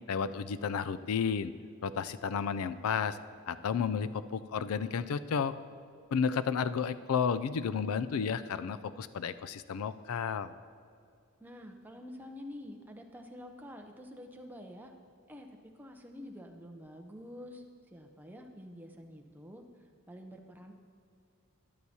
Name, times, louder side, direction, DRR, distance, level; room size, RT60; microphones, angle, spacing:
voice 1, 0.1-1.5 1.8-3.2 3.5-5.5 6.1-10.5, left 6 dB, 75° left, 14 dB, 0.4 m, -32 dB
voice 2, 11.4-14.9 15.3-15.5 15.8-19.6 20.1-20.7, left 1 dB, 10° right, 3 dB, 0.6 m, -48 dB
13.0 x 11.0 x 2.8 m, 2.4 s
head